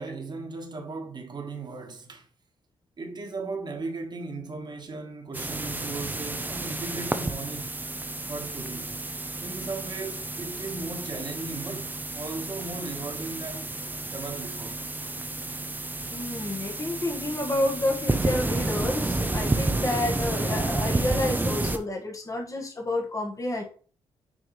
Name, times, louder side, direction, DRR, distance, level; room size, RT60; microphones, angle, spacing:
voice 1, 0.0-2.3 3.0-7.7 8.3-9.0 9.4-14.9, right 3 dB, 40° right, 1.4 m, -37 dB
sound 1, 5.3-21.8, right 2 dB, 15° right, 0.7 m, -31 dB
voice 2, 16.1-23.6, left 1 dB, 30° left, 1.6 m, -29 dB
6.4 x 4.6 x 3.2 m
cardioid pair, 75°, 11 cm